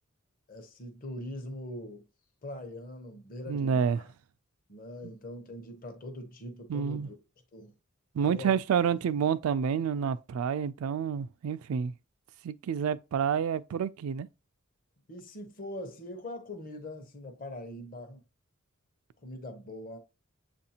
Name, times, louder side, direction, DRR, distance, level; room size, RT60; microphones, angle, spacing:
voice 1, 0.5-2.0 2.4-4.1 4.7-7.2 7.5-7.7 8.2-8.5 15.1-18.2 19.2-20.0, left 1 dB, 45° left, 0.8 m, -42 dB
voice 2, 3.5-4.0 6.7-7.1 8.1-11.9 12.4-14.3, right 7 dB, 85° right, 0.3 m, -29 dB
7.0 x 2.6 x 2.8 m
head